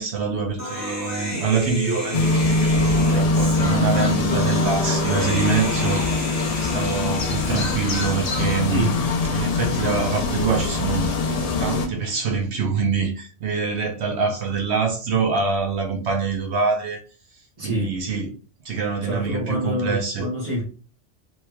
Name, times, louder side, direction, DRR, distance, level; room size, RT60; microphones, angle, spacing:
voice 1, 0.0-6.0 6.3-8.9 9.3-11.1 11.6-17.0 17.6-18.4 18.6-20.3, right 5 dB, 70° right, 0.9 m, -25 dB
Human voice, 0.6-8.6, left 1 dB, 15° left, 1.0 m, -31 dB
sound 1, 2.1-11.9, left 3 dB, 50° left, 0.5 m, -23 dB
voice 2, 8.7-9.0 17.6-17.9 19.0-20.6, equal, 35° right, 1.1 m, -27 dB
3.2 x 3.0 x 2.3 m
omnidirectional pair, 1.2 m